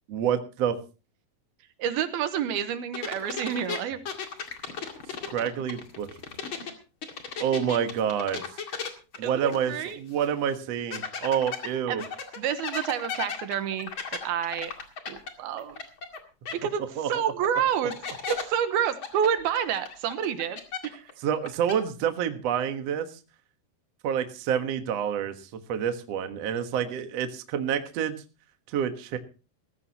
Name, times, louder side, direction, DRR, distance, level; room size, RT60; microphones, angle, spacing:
voice 1, 0.1-0.8 5.3-6.1 7.4-8.4 9.2-12.0 17.0-17.1 21.2-23.1 24.0-28.2 28.7-29.2, right 8 dB, 60° right, 8 dB, 1.8 m, -28 dB
voice 2, 1.8-4.0 9.2-10.0 11.9-12.1 12.4-13.9 14.2-14.7 15.1-15.8 16.5-17.9 18.3-21.0, right 8 dB, 75° right, 11 dB, 2.9 m, -29 dB
sound 1, 2.9-6.7 7.0-9.9 10.2-10.3 10.9-16.2 16.4-16.5 17.4-17.5 17.9-18.4 19.0-21.1 21.4-21.7, left 5 dB, 40° left, 2.2 m, -36 dB
19.5 x 15.0 x 2.9 m, 0.32 s
omnidirectional pair, 4.7 m